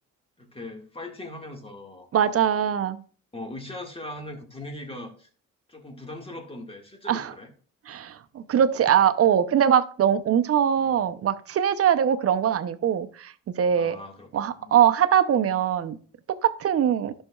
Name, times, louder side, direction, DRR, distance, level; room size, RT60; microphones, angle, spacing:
voice 1, 0.4-2.1 3.3-5.3 5.7-7.5 10.8-10.9 13.8-14.8, left 1 dB, 20° left, 3 dB, 1.8 m, -40 dB
voice 2, 2.1-3.0 7.1-7.3 7.9-14.0 14.3-16.0 16.4-17.1, right 9 dB, 50° right, 11 dB, 0.7 m, -22 dB
11.0 x 6.4 x 2.4 m, 0.43 s
cardioid pair, 90°, 30 cm